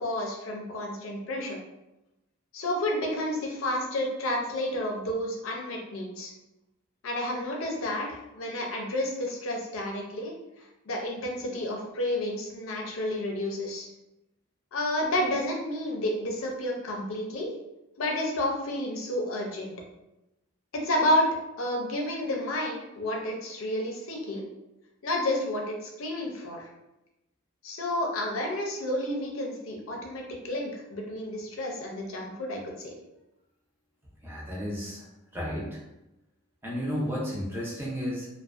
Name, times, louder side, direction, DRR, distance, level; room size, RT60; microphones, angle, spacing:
voice 1, 0.0-1.6 2.5-6.3 7.0-13.9 14.7-17.5 18.0-19.7 20.7-24.5 25.0-26.6 27.6-32.9, left 1 dB, 75° left, 0 dB, 0.5 m, -30 dB
voice 2, 34.2-35.1 35.3-35.8 36.6-38.3, equal, 10° right, -4 dB, 0.5 m, -32 dB
2.4 x 2.2 x 2.4 m, 0.94 s
head